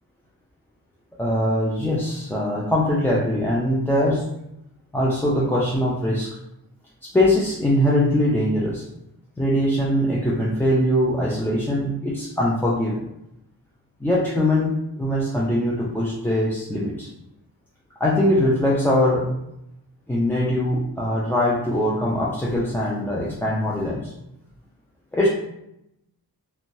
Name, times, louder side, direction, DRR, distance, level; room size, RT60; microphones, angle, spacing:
voice 1, 1.2-4.3 4.9-6.4 7.0-8.8 9.4-13.0 14.0-17.1 18.0-19.3 20.1-24.1 25.1-25.3, left 1 dB, 5° left, -6 dB, 0.3 m, -22 dB
2.5 x 2.2 x 3.0 m, 0.83 s
wide cardioid pair, 125°, 38 cm